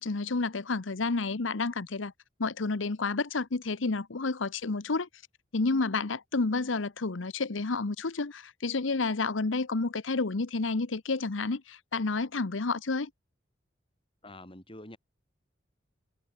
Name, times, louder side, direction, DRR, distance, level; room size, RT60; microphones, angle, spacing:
voice 1, 0.0-2.1 2.4-5.1 5.5-13.1, left 3 dB, 85° left, 1.0 m, -30 dB
voice 2, 14.2-15.0, left 1 dB, 30° left, 5.8 m, -46 dB
head